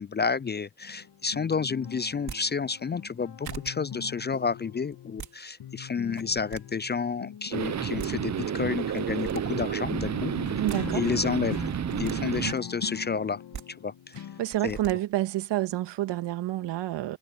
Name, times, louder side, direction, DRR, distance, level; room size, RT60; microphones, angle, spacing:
voice 1, 0.0-10.3 10.9-11.6 12.0-14.3 14.6-14.8, left 5 dB, 25° left, 0.5 m, -30 dB
sound 1, 0.8-5.3 5.6-14.5, left 9 dB, 60° left, 2.2 m, -42 dB
sound 2, 2.1-2.4 3.1-3.2 3.4-3.7 4.9-5.3 6.0-6.6 7.7-7.8 8.0-8.1 8.9-9.4 10.4-10.8 11.7-12.2 13.3-13.6 14.5-14.9, right 8 dB, 60° right, 4.5 m, -40 dB
sound 3, 7.5-12.5, right 9 dB, 40° right, 0.8 m, -30 dB
voice 2, 10.6-11.0 14.4-17.2, right 14 dB, 75° right, 2.0 m, -28 dB
hypercardioid pair, 40°, 43 cm